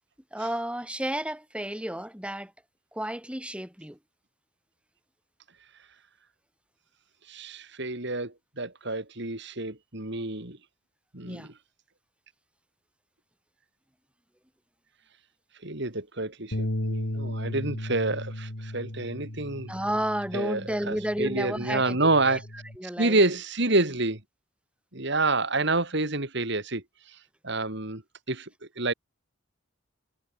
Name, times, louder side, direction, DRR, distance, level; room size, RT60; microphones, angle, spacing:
voice 1, 0.3-2.5 2.9-4.0 11.3-11.5 19.7-22.0 22.3-22.4 22.8-23.2, right 1 dB, 5° right, 7.9 m, -32 dB
voice 2, 7.3-10.6 11.1-11.5 15.6-19.7 20.3-22.4 23.0-24.2 24.9-27.2 27.4-28.0 28.3-28.5 28.8-28.9, right 2 dB, 60° right, 3.8 m, -28 dB
Bass guitar, 16.5-22.8, left 1 dB, 80° left, 3.2 m, -35 dB
head